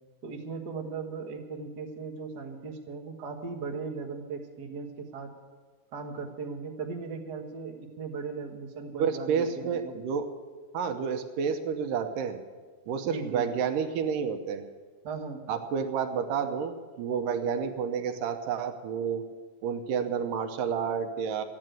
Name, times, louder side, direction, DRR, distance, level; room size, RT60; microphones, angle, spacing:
voice 1, 0.2-5.3 5.9-10.0 13.0-13.5 15.0-15.4, right 4 dB, 50° right, 0 dB, 1.2 m, -38 dB
voice 2, 9.0-10.3 10.7-12.4 12.9-14.6 15.5-19.2 19.6-21.4, right 7 dB, 75° right, 6 dB, 2.4 m, -30 dB
14.0 x 9.7 x 9.1 m, 1.5 s
omnidirectional pair, 4.0 m